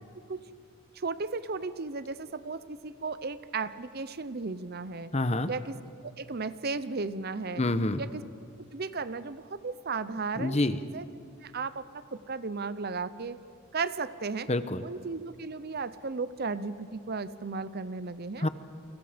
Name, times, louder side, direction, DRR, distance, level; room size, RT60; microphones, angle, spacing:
voice 1, 0.9-5.1 5.5-5.7 6.2-7.6 8.0-8.2 8.7-11.1 11.4-13.4 13.7-14.5 14.8-18.5, right 4 dB, 50° right, 14 dB, 0.7 m, -35 dB
voice 2, 5.1-5.5 7.6-8.0 10.4-10.8 14.5-14.8 18.4-18.5, left 2 dB, 30° left, 11 dB, 1.0 m, -27 dB
29.5 x 25.0 x 5.2 m, 2.6 s
head